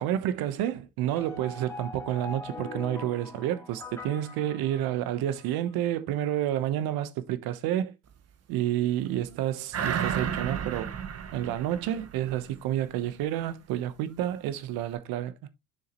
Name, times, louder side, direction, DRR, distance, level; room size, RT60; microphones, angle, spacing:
voice 1, 0.0-7.9 8.5-10.9 11.3-15.3, right 12 dB, 70° right, 1.1 m, -29 dB
sound 1, 1.1-5.5, left 3 dB, 5° left, 1.8 m, -42 dB
sound 2, 9.7-12.6 13.0-13.1, right 8 dB, 40° right, 1.3 m, -32 dB
6.6 x 6.5 x 3.0 m
supercardioid pair, 100°, 37 cm